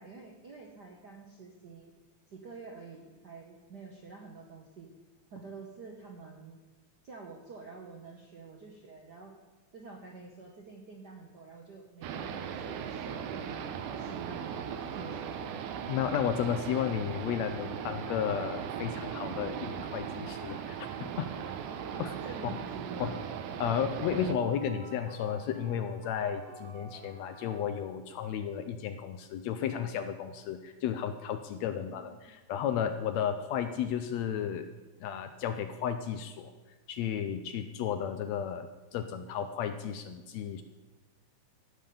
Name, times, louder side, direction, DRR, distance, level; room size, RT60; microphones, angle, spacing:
voice 1, 0.0-1.9 2.3-4.9 5.3-6.6 7.0-9.3 9.7-15.4 21.9-23.2 31.7-32.3, right 4 dB, 65° right, 0 dB, 1.0 m, -48 dB
sound 1, 12.0-24.3, right 8 dB, 85° right, 2.3 m, -38 dB
sound 2, 13.0-27.9, right 3 dB, 45° right, 1.9 m, -50 dB
voice 2, 15.9-21.3 22.0-22.1 23.0-23.1 23.6-34.7 35.0-36.5 36.9-40.6, left 8 dB, 80° left, 9 dB, 1.7 m, -33 dB
14.5 x 5.7 x 6.9 m, 1.2 s
omnidirectional pair, 3.5 m